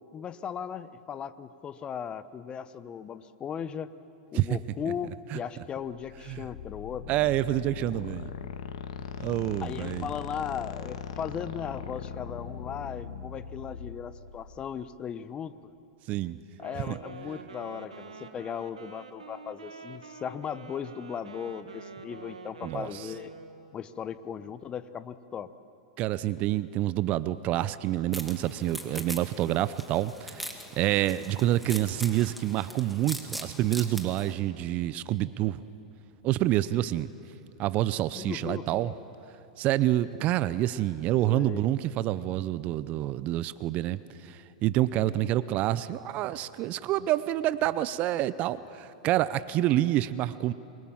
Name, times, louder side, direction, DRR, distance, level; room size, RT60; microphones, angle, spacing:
voice 1, 0.1-3.9 4.3-7.0 9.6-15.5 16.6-23.3 23.7-25.5 38.1-38.9 41.3-41.6, left 8 dB, 25° left, 14 dB, 1.0 m, -37 dB
sound 1, 5.9-14.8, left 7 dB, 65° left, 1.7 m, -40 dB
voice 2, 7.1-8.3 9.2-10.1 16.1-16.4 16.9-17.0 22.6-23.1 26.0-30.4 30.8-35.6 36.2-37.1 37.6-38.9 39.6-50.5, right 14 dB, 40° right, 16 dB, 0.7 m, -27 dB
Wind instrument woodwind instrument, 16.5-23.7, right 4 dB, 90° right, 1.8 m, -46 dB
sound 2, 28.1-34.3, equal, ahead, 2.6 m, -41 dB
27.0 x 22.5 x 7.4 m, 2.8 s
hypercardioid pair, 100°, 4 cm